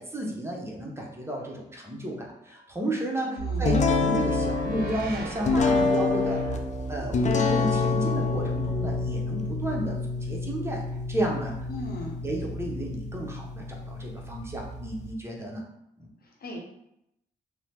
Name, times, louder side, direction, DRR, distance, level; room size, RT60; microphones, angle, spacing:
voice 1, 0.0-6.6 6.9-10.8 11.1-11.5 12.2-15.6 16.0-16.1, right 1 dB, 15° right, -1 dB, 0.8 m, -32 dB
voice 2, 3.3-3.7 11.7-12.2 16.2-16.6, left 1 dB, 65° left, 0 dB, 0.8 m, -37 dB
sound 1, 3.4-13.2 14.2-15.2, right 4 dB, 60° right, 0.6 m, -37 dB
sound 2, 3.6-15.1, left 4 dB, 45° left, 0.4 m, -28 dB
2.7 x 2.0 x 3.3 m, 0.81 s
cardioid pair, 60°, 17 cm